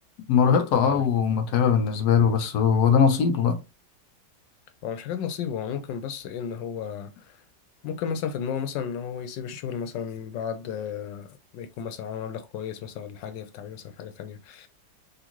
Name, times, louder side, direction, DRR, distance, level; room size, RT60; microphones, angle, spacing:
voice 1, 0.3-3.6, left 7 dB, 70° left, 1.2 m, -21 dB
voice 2, 4.8-7.1 7.8-14.7, left 7 dB, 85° left, 1.4 m, -33 dB
3.9 x 3.1 x 3.0 m
omnidirectional pair, 1.9 m